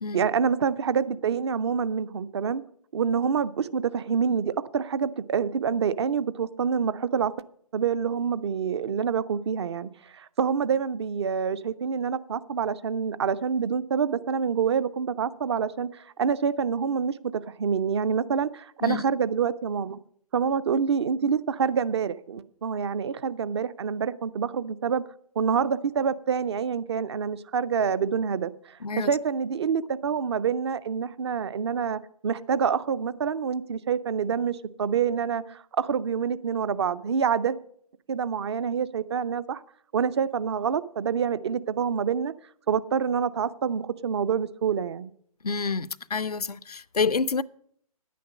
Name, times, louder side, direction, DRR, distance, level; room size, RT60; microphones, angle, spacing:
voice 1, 0.1-2.6 2.9-7.3 7.7-20.0 20.3-25.0 25.4-37.6 38.1-39.6 39.9-42.3 42.7-45.1, right 6 dB, 45° right, 0.5 m, -27 dB
voice 2, 45.4-47.4, left 4 dB, 85° left, 0.4 m, -28 dB
10.0 x 9.3 x 6.2 m
figure-of-eight pair, 130°, 19 cm